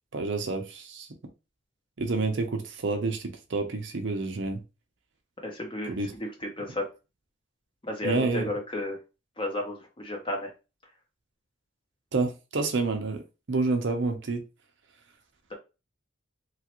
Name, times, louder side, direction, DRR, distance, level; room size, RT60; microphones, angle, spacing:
voice 1, 0.1-1.1 2.0-4.6 5.9-6.2 8.0-8.5 12.1-13.2 13.5-14.4, right 3 dB, 60° right, 0.6 m, -28 dB
voice 2, 5.4-5.9 6.2-6.3 6.6-6.8 7.8-9.0 9.4-10.5, left 1 dB, 25° left, 0.8 m, -32 dB
3.0 x 2.4 x 2.9 m
head